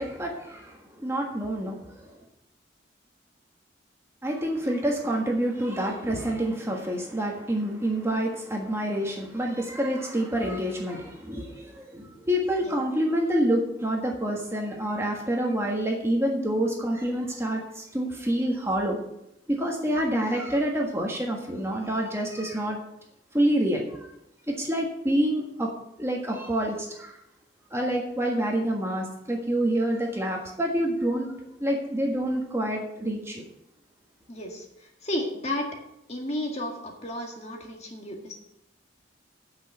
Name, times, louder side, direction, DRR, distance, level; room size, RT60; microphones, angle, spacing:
voice 1, 0.0-2.2 4.2-19.0 19.5-22.8 23.3-24.1 24.5-25.7 26.0-27.2 27.7-31.3 31.6-33.4, right 1 dB, 15° right, 0 dB, 1.5 m, -27 dB
voice 2, 34.3-35.8 36.1-38.3, left 1 dB, 35° left, 1 dB, 1.8 m, -33 dB
8.5 x 6.4 x 7.8 m, 0.84 s
head